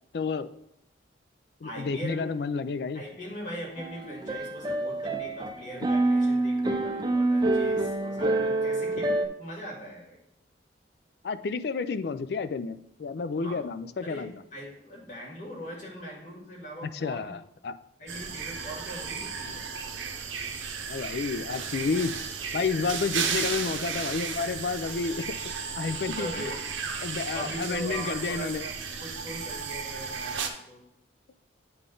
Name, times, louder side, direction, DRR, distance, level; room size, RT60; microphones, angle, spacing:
voice 1, 0.1-0.5 1.6-3.0 11.2-14.3 16.8-17.8 20.9-22.2 22.5-25.4 25.8-26.4 27.0-28.7, left 4 dB, 55° left, 12 dB, 0.4 m, -30 dB
voice 2, 1.6-2.2 2.9-10.2 13.4-13.6 14.0-17.4 18.0-19.6 26.2-30.8, equal, 40° left, -2 dB, 1.9 m, -40 dB
sound 1, 3.8-9.3, right 2 dB, 20° right, 0.4 m, -27 dB
sound 2, 18.1-30.5, right 6 dB, 90° right, 0.8 m, -34 dB
9.2 x 3.9 x 3.8 m, 0.78 s
head